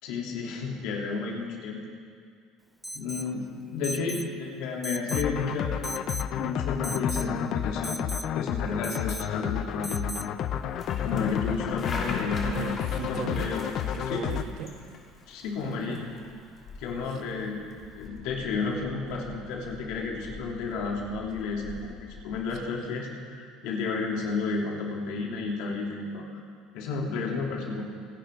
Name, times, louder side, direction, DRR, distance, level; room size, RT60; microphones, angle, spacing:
voice 1, 0.0-1.8 2.9-5.7 6.3-8.0 8.3-10.0 11.0-12.5 13.1-13.7 14.1-14.3 15.3-16.1 16.8-17.6 17.9-26.2 26.7-27.8, left 4 dB, 75° left, -2 dB, 3.2 m, -32 dB
Alarm, 2.8-3.3 3.8-4.3 4.8-5.3 5.8-6.3 6.8-7.3 7.8-8.3 8.8-9.3 9.8-10.3, right 1 dB, 5° right, 0.3 m, -37 dB
sound 1, 5.1-14.4, left 9 dB, 55° left, 0.7 m, -31 dB
sound 2, 10.4-22.7, left 3 dB, 35° left, 2.8 m, -43 dB
voice 2, 12.4-13.5 13.9-14.8 15.6-16.1 17.1-17.2, right 7 dB, 60° right, 6 dB, 1.3 m, -38 dB
27.0 x 11.0 x 3.8 m, 2.2 s
supercardioid pair, 120°, 0 cm